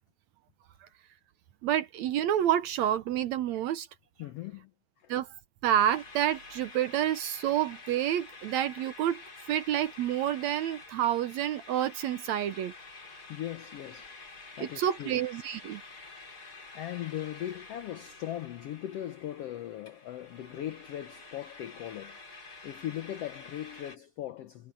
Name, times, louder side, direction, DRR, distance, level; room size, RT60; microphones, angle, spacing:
voice 1, 1.6-3.9 5.1-5.3 5.6-9.2 9.5-12.7 14.6-15.8, right 11 dB, 70° right, 1.9 m, -28 dB
voice 2, 4.2-4.7 5.0-5.1 13.3-15.2 16.7-24.7, left 12 dB, 80° left, 1.4 m, -39 dB
sound 1, 5.8-24.0, left 3 dB, 30° left, 4.0 m, -49 dB
omnidirectional pair, 3.8 m